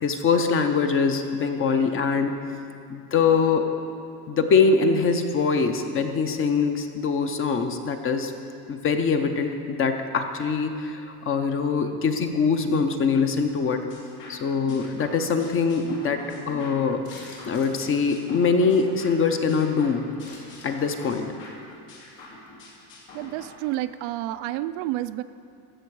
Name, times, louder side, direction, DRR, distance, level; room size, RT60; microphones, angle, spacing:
voice 1, 0.0-2.4 2.9-3.6 4.3-8.3 8.7-13.8 14.3-17.0 17.5-20.0 20.6-21.3, left 5 dB, 30° left, 6 dB, 0.7 m, -23 dB
sound 1, 13.9-23.5, left 2 dB, 80° left, 2.7 m, -46 dB
sound 2, 17.0-19.2 20.2-21.1 21.4-21.6 22.2-22.3 22.5-22.7 23.0-23.1, left 3 dB, 60° left, 2.8 m, -48 dB
voice 2, 23.1-25.2, right 15 dB, 65° right, 12 dB, 0.5 m, -30 dB
14.0 x 6.9 x 4.7 m, 2.4 s
cardioid pair, 145°, 43 cm